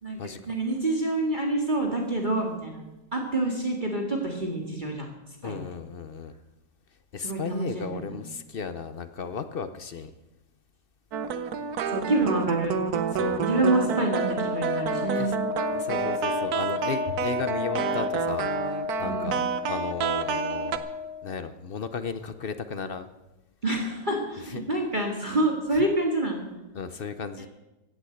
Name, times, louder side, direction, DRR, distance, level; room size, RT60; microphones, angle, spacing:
voice 1, 0.0-2.8 3.1-5.1 5.4-5.6 7.2-8.3 11.9-12.7 13.4-15.3 19.0-19.3 23.6-26.4, right 2 dB, 30° right, 0 dB, 2.2 m, -27 dB
voice 2, 5.4-6.3 7.1-10.1 13.1-13.4 15.2-15.3 15.7-19.4 19.7-20.9 21.2-23.1 24.5-24.7 25.7-25.9 26.7-27.5, left 5 dB, 55° left, 11 dB, 0.6 m, -35 dB
sound 1, 11.1-20.8, right 6 dB, 65° right, 1.4 m, -29 dB
Wind instrument woodwind instrument, 13.5-21.3, left 5 dB, 5° right, 1.2 m, -33 dB
16.5 x 8.8 x 7.9 m, 1.0 s
omnidirectional pair, 1.8 m